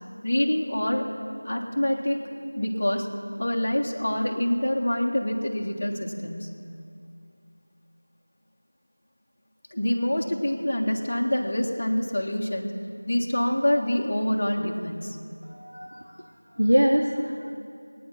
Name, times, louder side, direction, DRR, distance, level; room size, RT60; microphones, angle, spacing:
voice 1, 0.2-1.1 1.4-2.2 2.5-3.1 3.4-6.6 9.7-12.7 13.1-15.2, left 1 dB, 30° left, -1 dB, 1.3 m, -26 dB
voice 2, 15.5-16.1 16.6-17.5, equal, 75° right, 2 dB, 1.0 m, -23 dB
20.5 x 9.5 x 5.6 m, 2.5 s
figure-of-eight pair, 175°, 0 cm